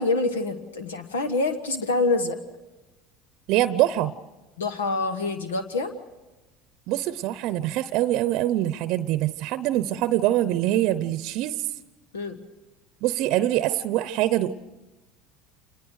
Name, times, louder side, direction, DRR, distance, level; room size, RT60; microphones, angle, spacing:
voice 1, 0.0-2.4 4.6-5.9 12.1-12.4, left 3 dB, 90° left, 9 dB, 1.3 m, -26 dB
voice 2, 3.5-4.1 6.9-11.6 13.0-14.5, right 14 dB, 60° right, 14 dB, 0.7 m, -24 dB
26.0 x 20.5 x 6.5 m, 1.1 s
hypercardioid pair, 80°, 0 cm